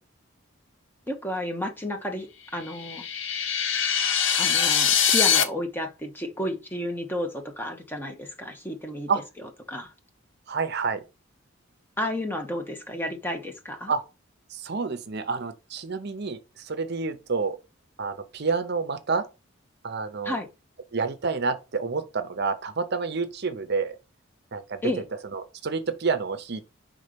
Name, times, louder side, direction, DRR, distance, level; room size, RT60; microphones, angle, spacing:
voice 1, 1.1-3.0 4.4-9.1 9.7-9.9 12.0-13.9 20.2-20.5 24.8-25.0, left 1 dB, 10° left, 0.9 m, -32 dB
sound 1, 2.7-5.4, left 8 dB, 65° left, 0.8 m, -23 dB
voice 2, 10.5-11.0 13.9-14.0 14.5-17.6 18.0-19.3 19.8-20.4 20.9-24.0 24.5-24.8 25.3-26.6, right 4 dB, 55° right, 0.7 m, -29 dB
5.5 x 3.7 x 5.1 m
head